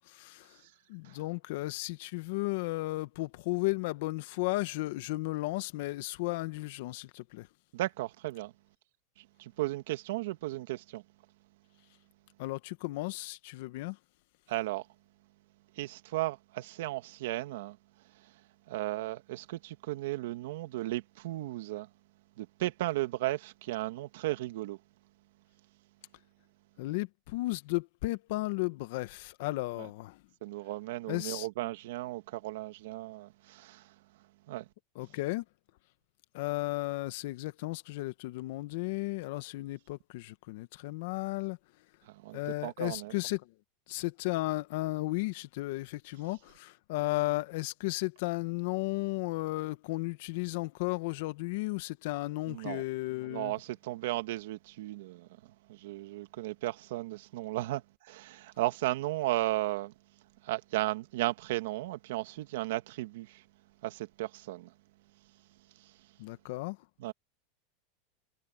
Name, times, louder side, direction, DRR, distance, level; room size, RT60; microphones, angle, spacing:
voice 1, 0.0-0.6 0.9-7.5 12.4-14.0 26.8-30.2 31.1-31.5 34.9-35.4 36.3-41.6 42.3-43.5 43.9-53.5 66.2-66.8, left 20 dB, 65° left, 1.4 m, -34 dB
voice 2, 7.7-8.5 9.2-11.0 14.5-14.9 15.8-17.8 18.2-18.3 18.7-21.9 22.4-24.8 30.4-33.9 34.5-34.7 42.1-43.1 52.5-52.8 53.2-59.9 60.4-63.4 63.8-64.7 65.8-65.9 67.0-67.1, right 17 dB, 75° right, 1.9 m, -35 dB
supercardioid pair, 130°, 0 cm